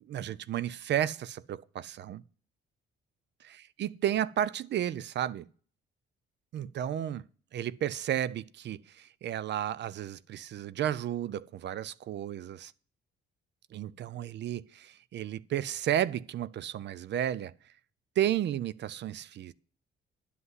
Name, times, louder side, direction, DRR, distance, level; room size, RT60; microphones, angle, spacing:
voice 1, 0.1-2.2 3.4-5.5 6.5-7.2 7.5-12.7 13.7-17.5 18.2-19.5, right 11 dB, 60° right, 0.5 m, -33 dB
11.0 x 5.6 x 8.0 m
cardioid pair, 90°, 20 cm